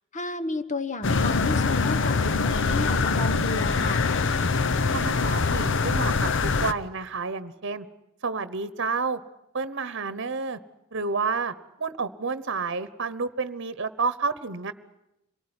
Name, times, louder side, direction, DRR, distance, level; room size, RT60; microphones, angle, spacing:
voice 1, 0.1-4.0, left 2 dB, 35° left, 11 dB, 1.1 m, -32 dB
sound 1, 1.0-6.7, left 4 dB, 60° left, 0.9 m, -24 dB
Wind instrument woodwind instrument, 1.7-6.9, right 3 dB, 10° left, 6.4 m, -50 dB
voice 2, 4.9-7.8 8.2-9.2 9.5-10.6 10.9-11.5 11.8-14.7, right 4 dB, 60° right, 14 dB, 1.1 m, -30 dB
26.5 x 18.0 x 9.8 m, 0.89 s
head